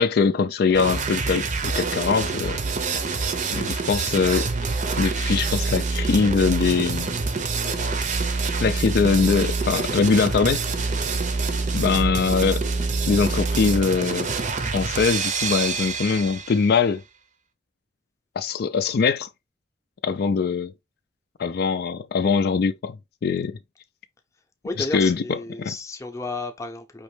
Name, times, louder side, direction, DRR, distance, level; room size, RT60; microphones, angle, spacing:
voice 1, 0.0-2.6 3.5-4.5 5.0-7.1 8.6-10.6 11.7-12.6 13.1-14.3 14.7-17.0 18.4-19.3 20.0-20.7 21.4-23.0 23.2-23.5 24.9-25.2 25.6-25.7, left 5 dB, 60° left, 0.4 m, -22 dB
sound 1, 0.7-16.7, right 4 dB, 45° right, 0.6 m, -26 dB
voice 2, 24.6-27.0, left 2 dB, 15° left, 0.6 m, -33 dB
5.2 x 3.0 x 3.2 m
head